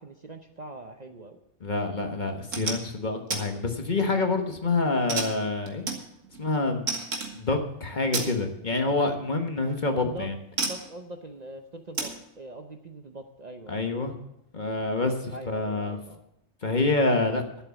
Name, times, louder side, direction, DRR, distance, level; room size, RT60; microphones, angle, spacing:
voice 1, 0.0-1.4 10.0-10.3 10.6-13.8 15.3-16.2, right 2 dB, 40° right, 5 dB, 0.8 m, -42 dB
voice 2, 1.6-5.8 6.4-6.9 7.3-10.4 13.7-14.1 14.5-16.0 16.6-17.4, left 3 dB, 40° left, 5 dB, 1.4 m, -27 dB
sound 1, 2.3-2.8 3.3-3.5 3.9-4.3 5.1-6.4 6.9-7.4 8.1-8.4 9.6-9.8 10.6-10.9 11.9-12.2, right 3 dB, 80° right, 2.0 m, -31 dB
11.5 x 8.0 x 7.0 m, 0.79 s
omnidirectional pair, 1.3 m